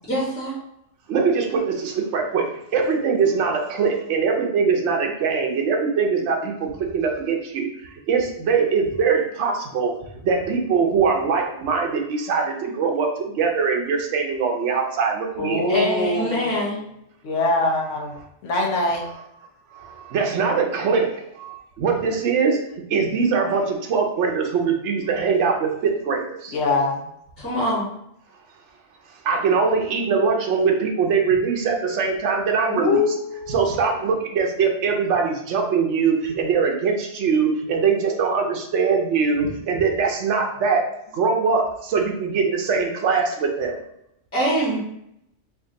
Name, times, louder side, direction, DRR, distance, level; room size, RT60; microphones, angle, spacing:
voice 1, 0.1-0.5 15.7-16.8 27.4-27.9 44.3-44.8, equal, 10° left, -7 dB, 1.2 m, -23 dB
voice 2, 1.1-2.4 2.7-6.7 6.9-7.7 8.1-9.9 10.2-15.6 19.8-21.1 21.4-22.6 22.9-26.5 29.2-33.0 33.5-40.8 41.1-41.6 41.9-43.8, right 5 dB, 75° right, 1 dB, 1.0 m, -22 dB
voice 3, 15.4-16.7 17.2-18.1 18.4-19.0 26.5-27.0 32.7-33.9, left 2 dB, 85° left, 0 dB, 1.1 m, -23 dB
3.4 x 2.6 x 3.8 m, 0.76 s
omnidirectional pair, 1.2 m